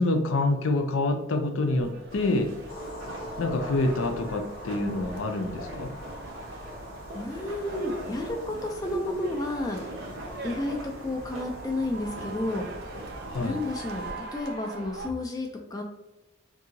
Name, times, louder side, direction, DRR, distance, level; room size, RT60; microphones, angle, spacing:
voice 1, 0.0-2.5 3.4-5.9 13.3-13.6, left 2 dB, 75° left, 5 dB, 0.5 m, -26 dB
sound 1, 1.7-15.1, right 3 dB, 50° right, 0.4 m, -44 dB
sound 2, 2.1-14.1, right 1 dB, 85° right, 1.0 m, -42 dB
sound 3, 2.7-13.4, left 1 dB, 45° left, 0.8 m, -46 dB
voice 2, 7.1-9.8 10.4-12.6 13.4-15.8, left 1 dB, 20° left, 1 dB, 0.4 m, -31 dB
2.8 x 2.7 x 3.8 m, 0.95 s
head